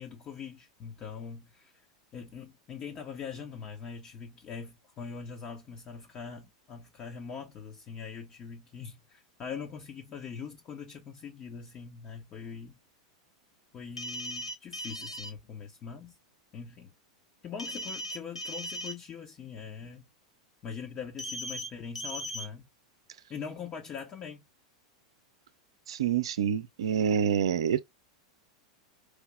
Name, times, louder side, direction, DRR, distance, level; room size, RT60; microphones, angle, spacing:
voice 1, 0.0-1.7 2.1-12.8 13.7-16.1 16.5-16.9 17.4-20.1 20.6-22.7 23.3-24.4, left 6 dB, 30° left, 0.8 m, -42 dB
sound 1, 14.0-15.3 17.6-18.9 21.2-21.7 21.9-22.4, equal, 85° left, 1.1 m, -37 dB
voice 2, 25.9-27.8, right 8 dB, 65° right, 0.5 m, -27 dB
4.8 x 2.8 x 2.2 m
figure-of-eight pair, 90°, 3 cm